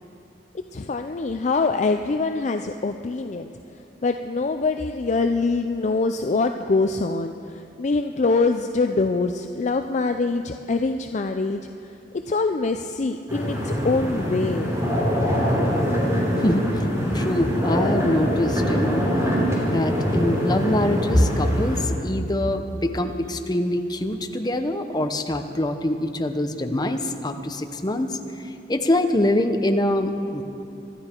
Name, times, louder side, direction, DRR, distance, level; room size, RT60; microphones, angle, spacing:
voice 1, 0.7-3.5 4.0-11.6 12.3-14.7, left 3 dB, 40° left, 7 dB, 0.4 m, -24 dB
sound 1, 13.3-21.8, equal, 15° right, 3.4 m, -23 dB
voice 2, 17.1-19.0 19.6-28.2 28.7-30.4, left 1 dB, 25° left, 6 dB, 0.8 m, -24 dB
25.0 x 12.0 x 4.5 m, 2.7 s
head